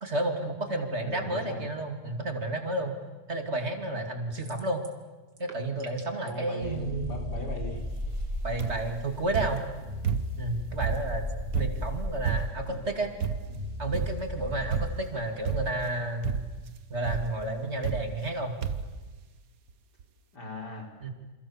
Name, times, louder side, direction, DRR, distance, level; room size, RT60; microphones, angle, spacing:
voice 1, 0.0-2.9 3.3-4.8 5.4-7.2 8.4-9.6 10.4-11.2 11.6-13.1 13.8-16.3 16.9-18.6 21.0-21.1, right 2 dB, 40° right, 5 dB, 2.8 m, -31 dB
voice 2, 1.0-1.7 6.2-7.9 11.5-11.6 12.7-12.8 20.3-20.9, left 1 dB, 85° left, 1 dB, 5.3 m, -38 dB
sound 1, 4.3-5.0 5.3-6.3, right 4 dB, 85° right, 3.2 m, -48 dB
sound 2, 6.6-14.8, left 1 dB, 15° right, 3.8 m, -36 dB
sound 3, 8.6-9.0 9.3-10.5 10.8-12.7 13.2-13.6 13.9-14.4 14.7-15.1 15.5-15.9 16.2-16.7 17.0-17.4 17.8-18.4 18.6-19.0 19.7-19.8 20.0-20.1, right 7 dB, 60° right, 1.5 m, -31 dB
28.0 x 27.5 x 7.2 m, 1.2 s
omnidirectional pair, 1.7 m